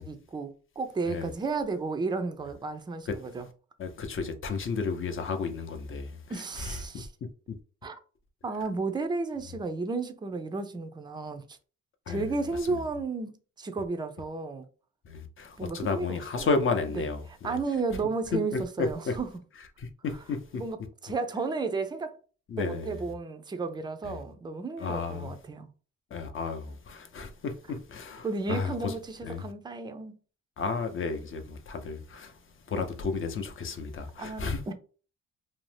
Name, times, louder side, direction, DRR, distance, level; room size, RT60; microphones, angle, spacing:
voice 1, 0.0-3.5 6.3-7.1 7.8-8.0 8.4-11.6 12.1-14.7 15.6-16.5 17.0-17.1 17.4-19.3 20.5-22.2 22.6-25.7 28.2-30.2 32.7-32.9 34.2-34.7, right 3 dB, 15° right, 0.4 m, -33 dB
voice 2, 3.8-6.2 6.6-6.8 12.1-12.3 12.7-12.8 15.1-17.6 18.3-19.2 19.8-20.6 22.5-23.0 24.1-24.2 24.8-25.3 26.1-28.9 29.2-29.4 30.6-32.3 32.7-34.7, left 4 dB, 45° left, 0.6 m, -32 dB
2.6 x 2.0 x 3.2 m
cardioid pair, 90°, 30 cm